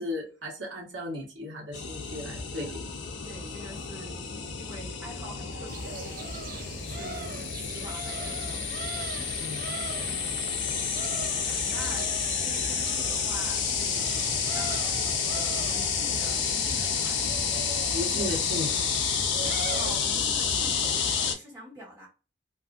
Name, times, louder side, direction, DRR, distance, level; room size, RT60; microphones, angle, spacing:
voice 1, 0.0-3.0 9.4-9.7 17.9-18.9, left 1 dB, 70° right, 1.1 m, -35 dB
sound 1, 1.7-21.3, left 6 dB, 65° left, 0.5 m, -30 dB
voice 2, 3.2-6.4 6.7-8.7 10.0-11.2 11.4-17.2 19.7-22.1, right 1 dB, 15° right, 1.5 m, -46 dB
sound 2, 5.7-20.0, right 5 dB, 45° right, 0.3 m, -40 dB
2.6 x 2.5 x 2.4 m
head